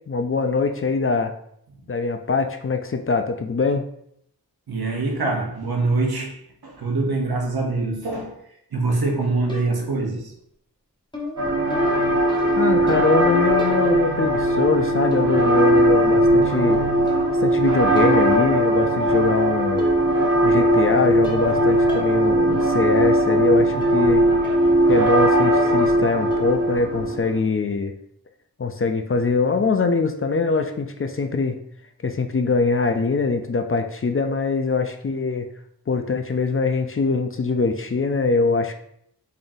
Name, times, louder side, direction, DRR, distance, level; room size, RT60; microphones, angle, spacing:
voice 1, 0.1-1.3 1.9-3.8 12.6-16.8 17.4-19.9 20.4-24.3 24.9-27.9 28.6-31.6 32.0-35.5 35.9-38.7, left 4 dB, 35° left, 6 dB, 0.4 m, -23 dB
voice 2, 4.7-6.4 6.6-8.4 8.7-10.3 17.0-17.3, right 3 dB, 85° right, 1 dB, 0.9 m, -24 dB
sound 1, 9.5-10.0 11.1-13.3 13.6-14.2 15.1-15.5 15.8-17.6 18.0-18.3 19.3-19.4 19.8-20.2 20.5-20.9 21.2-21.6 21.9-22.1 22.5-22.6 23.8-24.0 24.4-24.7 25.1-25.4 25.7-26.0 26.3-26.6, left 2 dB, 15° left, 0.8 m, -37 dB
sound 2, 11.4-27.4, right 1 dB, 50° right, 1.6 m, -19 dB
3.6 x 3.5 x 2.6 m, 0.71 s
wide cardioid pair, 45°, 36 cm